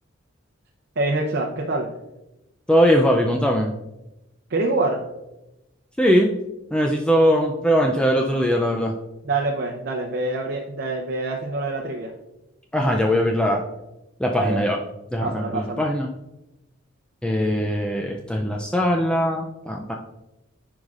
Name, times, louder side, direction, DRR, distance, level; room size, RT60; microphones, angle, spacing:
voice 1, 1.0-1.9 4.5-5.0 9.2-12.1 14.4-14.7 15.2-15.8, right 2 dB, 55° right, 0 dB, 0.7 m, -25 dB
voice 2, 2.7-3.7 6.0-6.3 6.7-8.9 12.7-13.6 14.2-14.8 15.1-16.1 17.2-19.9, equal, 5° left, 1 dB, 0.4 m, -20 dB
10.5 x 4.9 x 2.5 m, 0.95 s
head